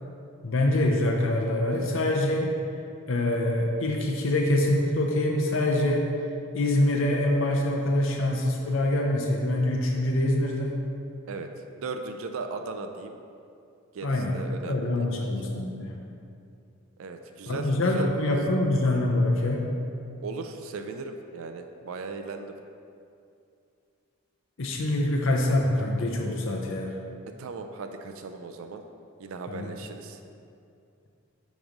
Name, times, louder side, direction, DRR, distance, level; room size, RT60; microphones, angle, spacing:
voice 1, 0.4-2.6 3.1-6.0 6.5-10.8 14.0-14.4 14.6-16.0 17.5-19.7 24.6-26.9 29.5-29.7, left 1 dB, 60° left, 0 dB, 0.6 m, -25 dB
voice 2, 11.8-13.2 13.9-15.3 17.0-18.4 20.2-22.6 27.4-28.8 29.2-30.2, right 4 dB, 70° right, 6 dB, 0.4 m, -37 dB
8.7 x 3.1 x 5.1 m, 2.5 s
head